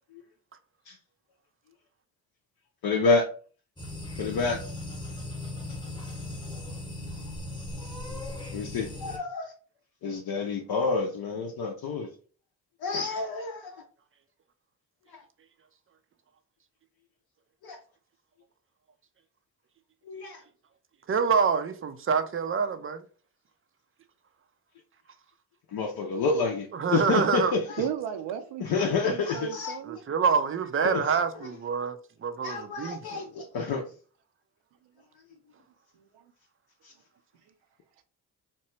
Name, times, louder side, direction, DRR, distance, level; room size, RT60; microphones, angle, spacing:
voice 1, 2.8-3.3 4.2-4.6 8.5-9.5 10.0-12.1 12.8-13.8 15.1-15.2 17.6-17.8 20.0-20.4 25.7-27.9 28.6-29.8 30.8-31.2 32.4-33.8 36.8-36.9, left 4 dB, 55° left, 0.6 m, -28 dB
sound 1, 3.8-9.2, left 1 dB, 10° left, 1.0 m, -38 dB
voice 2, 21.1-23.0 26.8-27.5 29.9-33.0, right 6 dB, 30° right, 0.4 m, -26 dB
voice 3, 27.8-30.0, right 9 dB, 75° right, 0.6 m, -34 dB
2.9 x 2.2 x 3.0 m
hypercardioid pair, 45°, 43 cm